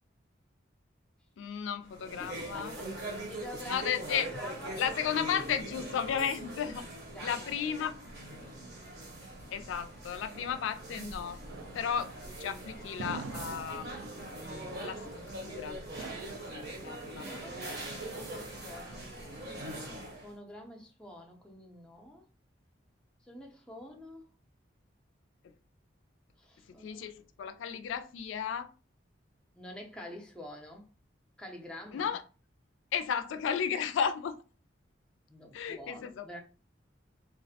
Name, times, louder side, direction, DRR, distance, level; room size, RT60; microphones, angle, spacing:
voice 1, 1.4-2.7 3.7-4.3 4.8-6.9 7.2-8.0 9.5-11.4 11.7-12.1 12.4-14.3 14.8-15.1 15.4-17.9 26.8-28.7 31.9-32.2 32.9-34.4 35.5-36.3, left 7 dB, 85° left, 0.3 m, -34 dB
sound 1, 1.9-20.3, right 1 dB, 55° right, 0.7 m, -42 dB
voice 2, 2.2-4.8 7.1-7.5 17.2-19.1 20.2-22.3 23.2-24.3 26.4-27.1 29.5-30.9 31.4-32.1 35.3-36.4, left 1 dB, 5° left, 0.4 m, -47 dB
sound 2, 11.5-18.5, right 4 dB, 90° right, 0.3 m, -47 dB
2.3 x 2.0 x 2.7 m
head